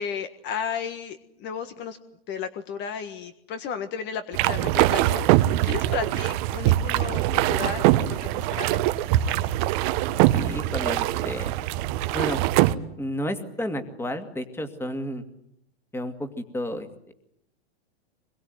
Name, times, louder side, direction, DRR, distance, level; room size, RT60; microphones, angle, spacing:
voice 1, 0.0-2.0 2.3-7.8 8.1-8.8, left 7 dB, 35° left, 9 dB, 1.6 m, -33 dB
sound 1, 4.3-12.7, right 15 dB, 45° right, 1.3 m, -23 dB
voice 2, 10.3-11.5 12.1-12.4 13.0-15.2 15.9-16.9, equal, 5° left, 8 dB, 2.5 m, -31 dB
25.5 x 22.0 x 9.4 m, 0.74 s
hypercardioid pair, 135°, 33 cm